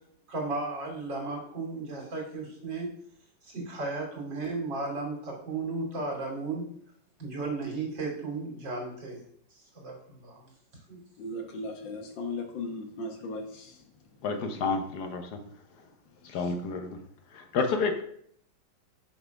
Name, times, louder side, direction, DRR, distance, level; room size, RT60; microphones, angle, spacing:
voice 1, 0.3-2.9 3.4-6.7 7.2-9.2 9.6-10.4 10.9-11.0, right 3 dB, 75° right, -2 dB, 3.4 m, -34 dB
voice 2, 11.2-13.8 16.3-16.5, left 2 dB, 85° left, 3 dB, 2.0 m, -37 dB
voice 3, 14.2-15.4 16.3-17.0 17.3-18.0, left 4 dB, 65° left, 6 dB, 1.3 m, -29 dB
6.6 x 6.0 x 4.7 m, 0.66 s
omnidirectional pair, 2.0 m